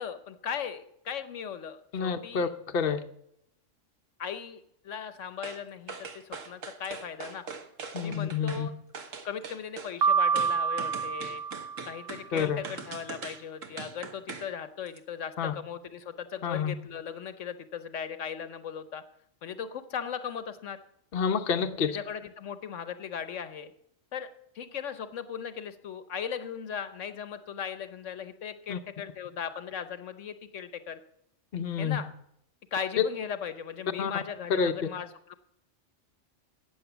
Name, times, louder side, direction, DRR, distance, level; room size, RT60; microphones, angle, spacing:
voice 1, 0.0-2.5 4.2-7.4 8.0-8.7 9.2-11.4 11.8-19.0 19.4-20.8 21.9-23.7 24.1-24.3 24.5-31.0 31.8-32.1 32.7-35.4, left 7 dB, 75° left, 11 dB, 1.2 m, -38 dB
voice 2, 1.9-3.0 7.9-8.7 12.3-12.6 15.4-15.5 16.4-16.7 21.1-22.0 28.7-28.8 31.5-32.0 33.0-33.1 34.0-34.1 34.5-34.7, left 6 dB, 50° left, 6 dB, 1.0 m, -28 dB
sound 1, 5.4-5.6 5.9-8.6 8.9-9.9 10.4-14.5 14.9-15.0, right 5 dB, 85° right, 1.7 m, -41 dB
Piano, 10.0-12.2, right 6 dB, 55° right, 0.8 m, -27 dB
14.0 x 8.9 x 7.0 m, 0.75 s
omnidirectional pair, 1.3 m